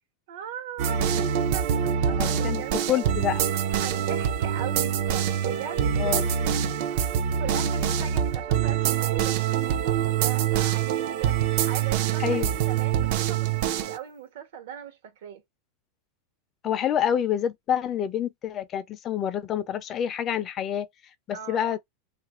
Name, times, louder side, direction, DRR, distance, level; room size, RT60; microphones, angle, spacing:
voice 1, 0.3-2.8 3.8-6.6 6.9-11.3 11.6-15.4 21.3-21.8, right 8 dB, 70° right, 1.1 m, -39 dB
sound 1, 0.8-14.0, right 9 dB, 50° right, 0.5 m, -25 dB
voice 2, 2.1-2.6 2.9-3.5 6.0-6.2 12.2-12.5 16.6-20.9 21.3-21.8, left 9 dB, 25° left, 0.5 m, -27 dB
3.1 x 2.5 x 2.9 m
supercardioid pair, 165°, 0 cm